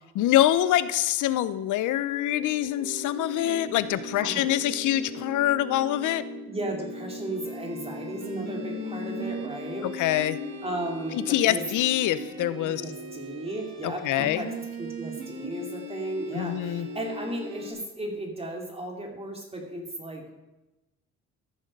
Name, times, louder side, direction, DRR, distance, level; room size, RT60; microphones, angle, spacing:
voice 1, 0.1-6.2 9.8-10.4 11.1-12.8 13.8-14.4 16.3-16.9, left 13 dB, 80° left, 15 dB, 0.6 m, -25 dB
sound 1, 2.0-17.7, left 1 dB, 65° right, 2.2 m, -38 dB
voice 2, 6.5-9.9 10.6-11.6 12.6-14.5 14.8-20.3, right 1 dB, 20° right, 1 dB, 2.5 m, -35 dB
14.0 x 6.5 x 5.3 m, 1.0 s
cardioid pair, 90°, 30 cm